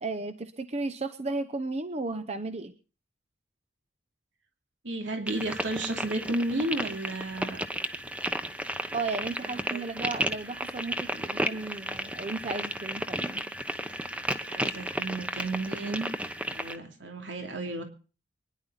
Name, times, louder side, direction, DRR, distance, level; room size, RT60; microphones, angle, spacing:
voice 1, 0.0-2.8 8.9-13.4, right 3 dB, 35° right, 11 dB, 0.8 m, -34 dB
voice 2, 4.8-7.6 9.4-9.8 14.5-16.1 16.5-17.8, right 2 dB, 80° right, 4 dB, 2.7 m, -33 dB
sound 1, 5.3-16.8, right 1 dB, 5° right, 1.0 m, -33 dB
24.5 x 10.5 x 3.9 m, 0.37 s
head